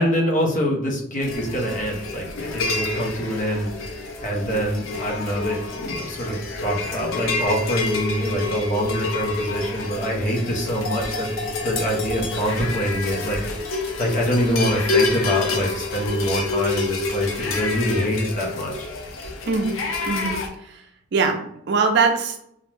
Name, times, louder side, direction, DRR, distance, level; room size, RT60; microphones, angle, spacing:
voice 1, 0.0-18.9, equal, 40° left, -1 dB, 0.6 m, -25 dB
sound 1, 1.2-20.5, left 3 dB, 85° left, 0.5 m, -28 dB
voice 2, 20.1-20.9 21.1-22.4, right 4 dB, 60° right, 5 dB, 0.4 m, -22 dB
2.5 x 2.0 x 3.1 m, 0.73 s
head